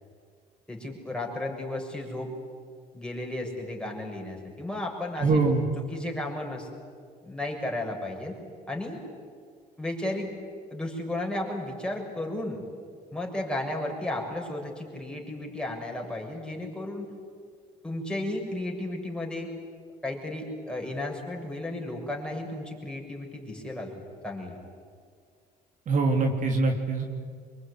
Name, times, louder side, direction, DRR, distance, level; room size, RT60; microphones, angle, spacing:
voice 1, 0.7-2.3 2.9-5.4 5.8-6.7 7.2-8.4 8.7-9.0 9.8-10.3 10.7-12.6 13.1-17.1 17.8-19.5 20.0-24.6, left 1 dB, 5° left, 0 dB, 7.0 m, -34 dB
voice 2, 5.2-5.6 25.9-27.1, right 3 dB, 50° right, 3 dB, 3.2 m, -24 dB
26.0 x 23.0 x 9.9 m, 2.1 s
cardioid pair, 110°, 17 cm